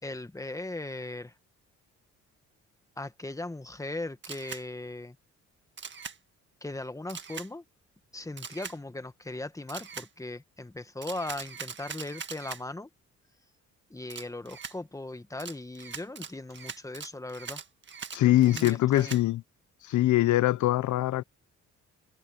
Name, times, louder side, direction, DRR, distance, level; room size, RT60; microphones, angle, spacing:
voice 1, 0.0-1.3 3.0-5.2 6.6-7.6 8.1-12.9 13.9-17.6 18.2-19.2, left 2 dB, 10° left, 1.6 m, -38 dB
Camera, 4.2-4.6 5.8-6.2 7.1-7.5 8.4-8.8 9.7-10.1 11.0-12.6 14.1-14.8 15.4-19.2, right 6 dB, 40° right, 1.7 m, -41 dB
voice 2, 18.1-19.4 19.8-21.2, left 15 dB, 75° left, 0.9 m, -23 dB
cardioid pair, 90°, 30 cm